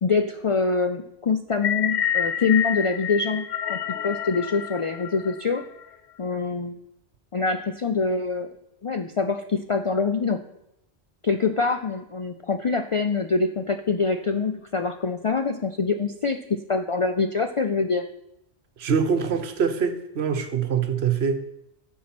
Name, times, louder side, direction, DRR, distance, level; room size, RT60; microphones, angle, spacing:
voice 1, 0.0-3.8 4.0-5.6 6.2-6.8 7.3-8.5 8.8-10.4 11.2-18.0, left 4 dB, 55° left, 0.3 m, -25 dB
sound 1, 1.5-5.8, left 9 dB, 90° left, 0.9 m, -28 dB
voice 2, 18.8-21.4, right 6 dB, 75° right, 1.1 m, -24 dB
12.5 x 4.6 x 5.9 m
omnidirectional pair, 1.1 m